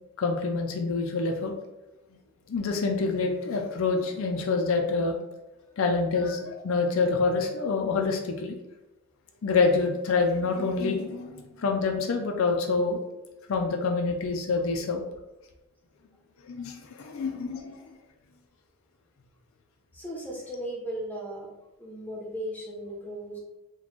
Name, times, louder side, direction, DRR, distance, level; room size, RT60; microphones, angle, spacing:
voice 1, 0.2-1.5 2.5-5.2 5.8-8.6 9.4-13.0 13.5-15.0 16.5-17.8, left 4 dB, 65° left, 3 dB, 0.4 m, -26 dB
voice 2, 19.9-21.5 21.8-23.4, right 1 dB, 10° left, -3 dB, 0.7 m, -37 dB
3.0 x 2.2 x 4.1 m, 0.97 s
head